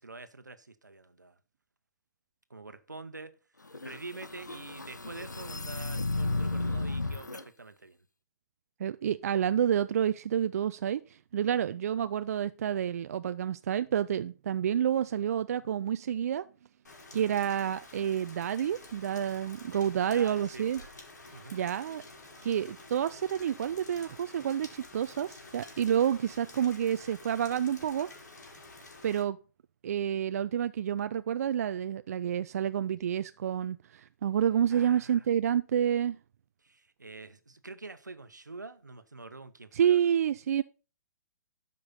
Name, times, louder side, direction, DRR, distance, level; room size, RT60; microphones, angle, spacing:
voice 1, 0.0-1.4 2.5-3.3 3.8-8.0 11.7-11.8 17.1-17.4 20.0-20.7 21.3-21.6 34.7-35.3 36.6-40.1, right 3 dB, 85° right, 1.0 m, -46 dB
sound 1, 3.7-7.4, left 2 dB, 85° left, 0.9 m, -34 dB
voice 2, 8.8-16.4 17.1-20.8 21.5-22.0 22.4-28.1 29.0-29.4 29.8-36.2 39.7-40.6, right 9 dB, 55° right, 0.4 m, -29 dB
Rain, 16.8-29.2, left 3 dB, 70° left, 3.5 m, -50 dB
12.5 x 5.3 x 4.1 m
figure-of-eight pair, 120°, 9 cm